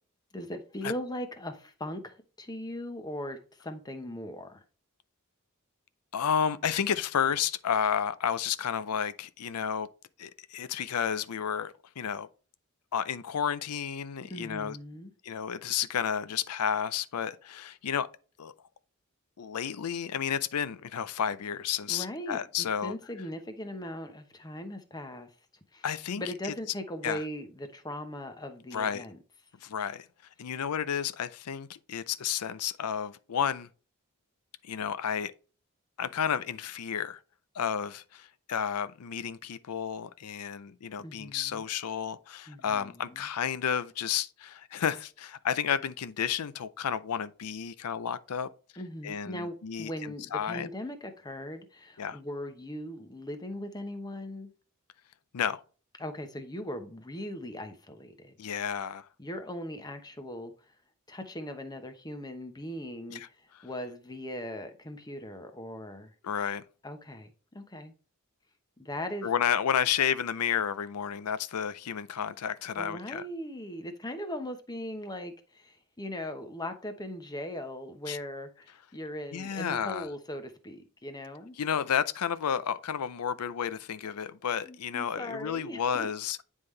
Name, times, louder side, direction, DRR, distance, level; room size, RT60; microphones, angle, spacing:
voice 1, 0.3-4.6 14.3-15.1 21.9-25.3 25.7-25.9 26.2-29.2 41.0-41.7 42.5-43.3 48.8-54.5 56.0-58.3 59.2-60.7 61.1-66.1 66.8-67.9 68.8-69.3 72.7-81.5 84.6-86.1, left 1 dB, 20° left, 0.9 m, -39 dB
voice 2, 6.1-9.9 10.2-12.3 12.9-14.8 15.2-18.1 18.4-18.5 19.4-22.9 25.8-26.5 27.0-27.2 28.7-29.0 29.6-30.1 30.4-33.7 34.6-35.3 36.0-37.2 37.5-48.5 49.0-50.7 52.0-52.2 55.3-55.6 58.4-59.1 63.1-63.3 66.2-66.6 69.2-73.2 78.1-78.2 79.3-80.1 81.6-86.4, left 8 dB, 85° left, 0.5 m, -31 dB
9.6 x 3.6 x 3.2 m
head